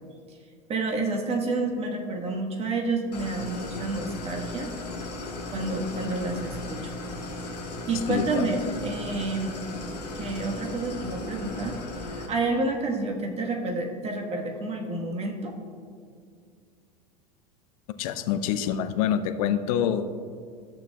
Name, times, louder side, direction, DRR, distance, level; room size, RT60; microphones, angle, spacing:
voice 1, 0.7-4.7 5.5-6.9 7.9-9.6 10.1-11.7 12.1-15.5, right 3 dB, 30° right, 1 dB, 1.4 m, -29 dB
Idling, 3.1-12.3, left 2 dB, 80° left, 1.5 m, -36 dB
voice 2, 8.1-8.7 18.0-20.1, left 9 dB, 60° left, 10 dB, 0.6 m, -26 dB
14.0 x 6.8 x 2.3 m, 2.2 s
hypercardioid pair, 85°, 21 cm